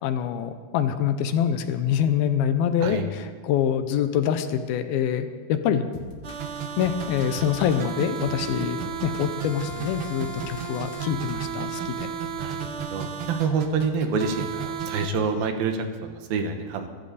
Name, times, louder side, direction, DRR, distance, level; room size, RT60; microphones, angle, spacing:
voice 1, 0.0-5.8 6.8-12.1, left 9 dB, 80° left, 9 dB, 2.7 m, -25 dB
sound 1, 5.9-11.6, left 3 dB, 60° left, 2.8 m, -43 dB
sound 2, 6.2-15.1, right 7 dB, 60° right, 1.4 m, -33 dB
voice 2, 12.4-16.9, right 5 dB, 75° right, 6 dB, 3.0 m, -27 dB
22.5 x 13.5 x 4.2 m, 1.5 s
omnidirectional pair, 4.4 m